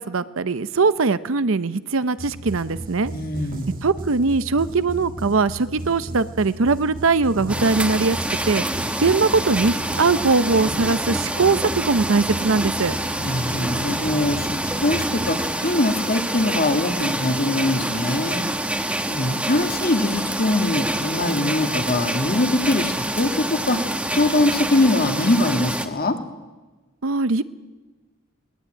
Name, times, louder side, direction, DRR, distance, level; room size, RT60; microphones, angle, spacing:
voice 1, 0.1-3.1 3.8-8.2 8.5-8.6 9.0-13.0 27.0-27.4, right 4 dB, 65° right, 15 dB, 0.7 m, -21 dB
sound 1, 2.2-16.1, right 1 dB, 40° right, 1.7 m, -35 dB
voice 2, 3.1-3.7 13.2-18.4 19.1-23.9 24.1-26.2, left 2 dB, 45° left, 6 dB, 1.8 m, -22 dB
sound 2, 7.5-25.9, right 1 dB, 5° right, 1.1 m, -26 dB
21.0 x 19.5 x 8.9 m, 1.3 s
head